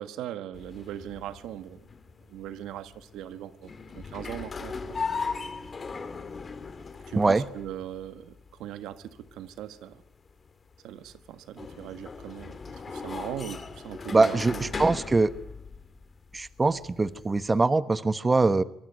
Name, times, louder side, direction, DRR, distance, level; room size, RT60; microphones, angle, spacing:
voice 1, 0.0-1.8 2.3-5.0 7.1-10.0 10.8-14.7, right 11 dB, 90° right, 11 dB, 1.5 m, -39 dB
sound 1, 0.5-17.6, left 4 dB, 35° left, 2.6 m, -39 dB
voice 2, 7.1-7.4 14.1-15.3 16.3-18.6, right 3 dB, 25° right, 13 dB, 1.2 m, -23 dB
25.0 x 19.5 x 9.2 m, 0.79 s
cardioid pair, 90°, 0 cm